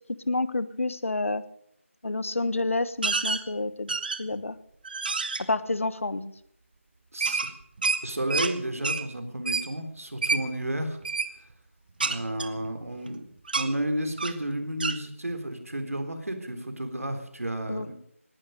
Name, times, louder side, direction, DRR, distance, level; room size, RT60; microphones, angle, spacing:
voice 1, 0.3-1.4 2.0-3.9 4.2-4.6 5.5-6.3 17.7-17.9, left 2 dB, 65° left, 15 dB, 1.2 m, -29 dB
sound 1, 3.0-3.4 3.9-4.4 4.8-5.4 7.2-8.5 8.8-9.0 9.5-9.7 10.2-10.4 11.0-11.3 12.0-13.1 13.5-13.7 14.2-14.4 14.8-15.0, right 4 dB, 40° right, 1.2 m, -28 dB
voice 2, 7.1-7.5 8.0-11.0 12.0-13.2 13.5-17.9, right 1 dB, 80° right, 6 dB, 3.8 m, -32 dB
18.5 x 12.0 x 6.5 m, 0.71 s
figure-of-eight pair, 165°, 8 cm